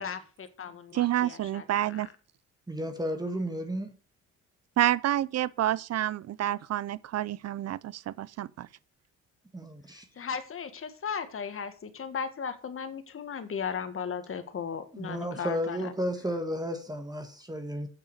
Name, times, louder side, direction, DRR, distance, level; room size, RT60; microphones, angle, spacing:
voice 1, 0.0-2.0 10.2-15.9, left 6 dB, 45° left, 1.8 m, -36 dB
voice 2, 0.9-2.1 4.8-8.7, right 12 dB, 60° right, 0.6 m, -28 dB
voice 3, 2.7-3.9 9.5-10.1 14.9-17.9, equal, 15° right, 1.7 m, -33 dB
8.6 x 6.5 x 6.7 m
cardioid pair, 90°, 30 cm